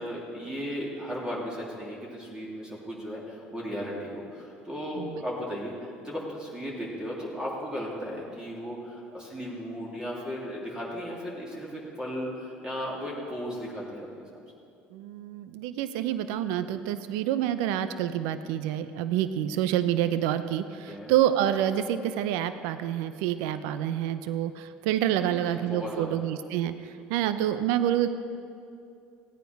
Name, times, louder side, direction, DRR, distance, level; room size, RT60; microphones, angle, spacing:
voice 1, 0.0-14.4 20.9-21.1 25.1-26.2, equal, 15° right, -5 dB, 3.1 m, -36 dB
voice 2, 14.9-26.7 27.1-28.1, right 11 dB, 75° right, 12 dB, 0.5 m, -27 dB
16.0 x 9.1 x 5.3 m, 2.5 s
hypercardioid pair, 70°, 6 cm